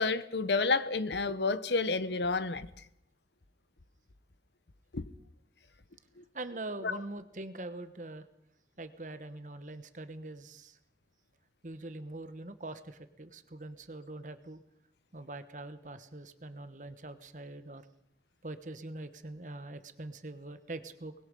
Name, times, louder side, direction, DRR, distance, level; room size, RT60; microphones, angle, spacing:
voice 1, 0.0-2.7 4.9-5.0, left 3 dB, 80° left, 14 dB, 1.0 m, -30 dB
voice 2, 6.3-8.3 8.8-10.8 11.6-14.6 15.1-17.9 18.4-21.1, right 2 dB, 45° right, 11 dB, 1.2 m, -43 dB
23.5 x 20.5 x 5.4 m, 0.78 s
head